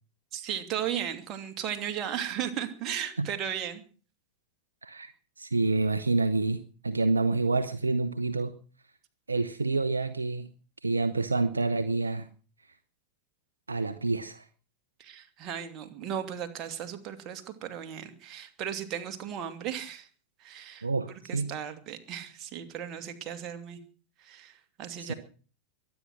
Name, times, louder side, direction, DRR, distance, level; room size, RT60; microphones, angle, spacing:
voice 1, 0.3-3.8 15.0-20.1 20.4-23.8 24.2-25.1, right 9 dB, 35° right, 6 dB, 2.7 m, -36 dB
voice 2, 4.8-5.1 5.4-8.5 9.3-10.5 10.8-12.3 13.7-14.4 20.8-21.5 25.0-25.1, right 3 dB, 80° right, 11 dB, 1.0 m, -28 dB
23.0 x 9.5 x 6.3 m, 0.39 s
figure-of-eight pair, 90°, 0 cm